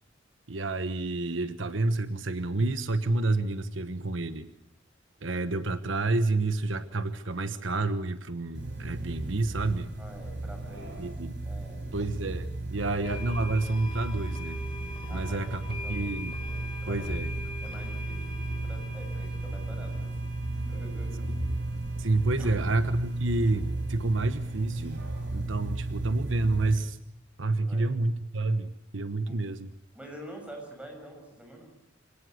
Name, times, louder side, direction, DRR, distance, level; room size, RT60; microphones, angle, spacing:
voice 1, 0.5-4.5 5.2-9.9 11.0-11.3 11.9-14.6 15.1-16.3 16.9-17.3 22.0-25.0 25.3-27.0 27.4-29.7, right 2 dB, 85° right, 11 dB, 1.2 m, -29 dB
sound 1, 8.5-26.7, right 2 dB, 65° right, 6.7 m, -34 dB
voice 2, 10.0-11.0 11.4-12.0 15.1-16.2 16.5-17.1 17.6-20.2 20.6-21.3 22.4-22.5 27.5-27.9 29.3-29.4 29.9-31.7, right 1 dB, 5° right, 2 dB, 6.8 m, -47 dB
sound 2, 13.0-24.6, left 3 dB, 30° left, 4.3 m, -44 dB
26.0 x 18.0 x 7.9 m, 0.75 s
head